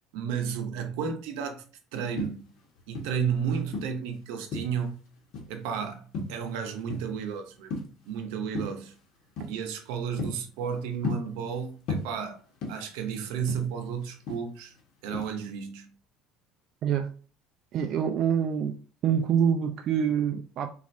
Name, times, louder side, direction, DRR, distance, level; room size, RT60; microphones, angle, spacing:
voice 1, 0.1-1.6 1.9-2.4 2.9-4.9 5.5-7.8 8.1-8.9 9.4-12.4 12.7-14.7 15.0-15.9, right 7 dB, 85° right, 0.7 m, -32 dB
sound 1, 2.0-3.3 3.7-4.9 5.3-5.7 6.1-7.3 7.5-8.1 8.5-8.9 9.4-9.6 9.9-11.6 11.9-13.0 13.3-14.8 15.1-15.5, left 3 dB, 65° left, 1.1 m, -35 dB
voice 2, 17.7-18.8 19.0-20.7, right 8 dB, 50° right, 0.3 m, -26 dB
4.1 x 2.5 x 2.6 m
cardioid pair, 125°, 0 cm